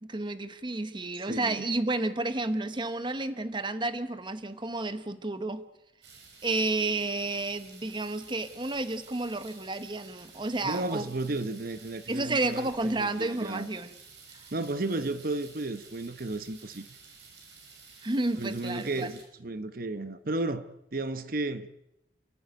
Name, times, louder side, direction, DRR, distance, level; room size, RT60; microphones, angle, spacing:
voice 1, 0.0-5.6 6.4-11.1 12.1-13.9 18.0-19.1, right 2 dB, 25° right, 1.1 m, -31 dB
voice 2, 1.3-1.7 10.6-13.7 14.5-16.8 18.4-21.7, right 2 dB, 55° right, 1.0 m, -33 dB
sound 1, 6.0-19.2, right 4 dB, 90° right, 5.9 m, -52 dB
30.0 x 12.5 x 9.2 m
head